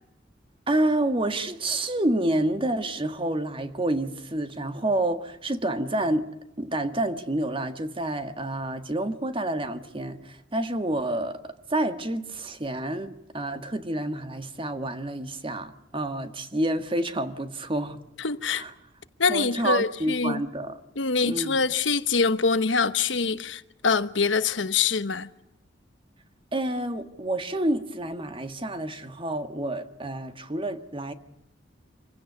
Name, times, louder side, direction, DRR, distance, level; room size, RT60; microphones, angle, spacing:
voice 1, 0.7-6.3 6.6-18.0 18.5-18.7 19.3-20.8 21.2-21.6 26.5-31.1, right 1 dB, 30° right, 1.7 m, -28 dB
voice 2, 18.2-18.6 19.2-20.4 20.9-25.3, left 4 dB, 80° left, 1.1 m, -24 dB
26.5 x 16.5 x 9.6 m
head